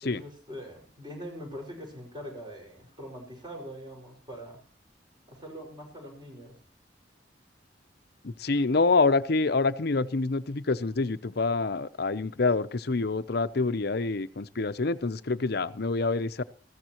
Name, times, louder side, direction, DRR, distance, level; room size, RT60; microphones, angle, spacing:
voice 1, 0.0-4.6 5.3-6.6, equal, 25° right, 0 dB, 5.3 m, -43 dB
voice 2, 8.2-16.4, left 3 dB, 60° left, 13 dB, 0.7 m, -26 dB
20.0 x 15.0 x 3.0 m, 0.42 s
head